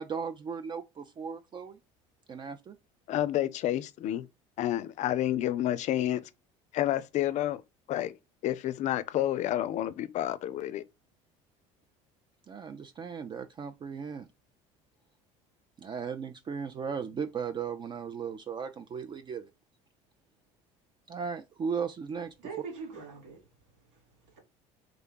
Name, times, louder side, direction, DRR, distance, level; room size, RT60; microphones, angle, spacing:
voice 1, 0.0-1.8 2.3-2.8 12.5-14.3 15.8-19.5 21.1-22.3, right 6 dB, 30° right, 0.4 m, -36 dB
voice 2, 3.1-4.3 4.6-6.2 6.7-7.6 7.9-8.1 8.4-10.8, left 13 dB, 50° left, 0.4 m, -29 dB
voice 3, 22.4-24.4, right 6 dB, 90° right, 1.7 m, -43 dB
3.5 x 2.2 x 3.7 m
supercardioid pair, 95°, 15 cm